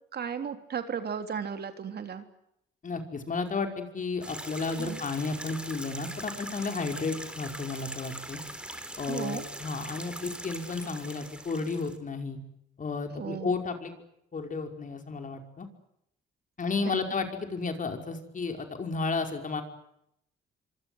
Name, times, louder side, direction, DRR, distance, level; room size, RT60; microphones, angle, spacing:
voice 1, 0.1-2.2 4.8-5.0 9.1-9.4 13.2-13.5 16.9-17.1, right 7 dB, 55° right, 7 dB, 3.4 m, -35 dB
voice 2, 2.8-8.4 9.0-12.4 12.8-13.9 14.3-15.7 16.6-19.6, left 4 dB, 40° left, 5 dB, 5.4 m, -32 dB
sound 1, 4.2-12.0, right 1 dB, 5° right, 4.0 m, -41 dB
26.0 x 25.0 x 8.1 m, 0.78 s
cardioid pair, 90°, 20 cm